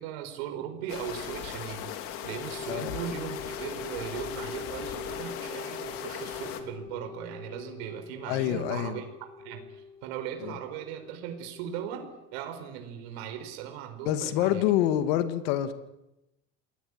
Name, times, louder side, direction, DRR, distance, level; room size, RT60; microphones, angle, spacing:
voice 1, 0.0-9.0 9.4-14.6, right 9 dB, 85° right, 7 dB, 4.7 m, -38 dB
sound 1, 0.9-6.6, left 10 dB, 45° left, 3.1 m, -38 dB
sound 2, 1.8-12.6, left 5 dB, 10° left, 3.7 m, -44 dB
voice 2, 8.3-9.0 10.4-10.6 14.0-15.7, left 12 dB, 75° left, 10 dB, 2.3 m, -27 dB
29.0 x 20.0 x 9.9 m, 0.94 s
cardioid pair, 180°, 30 cm